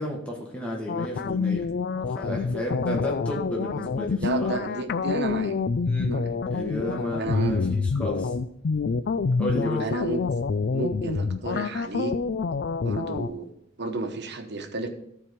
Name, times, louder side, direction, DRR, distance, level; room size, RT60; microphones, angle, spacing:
voice 1, 0.0-1.7 1.9-4.5 5.8-6.1 6.5-8.3 9.4-9.9, left 1 dB, 5° left, -2 dB, 1.3 m, -32 dB
sound 1, 0.9-13.3, left 4 dB, 50° left, 0.4 m, -27 dB
voice 2, 4.2-5.6 6.1-6.3 7.2-7.6 9.8-10.2 10.7-12.1 12.8-13.5 13.8-14.9, right 3 dB, 55° right, 6 dB, 1.1 m, -31 dB
14.0 x 4.7 x 5.2 m, 0.76 s
head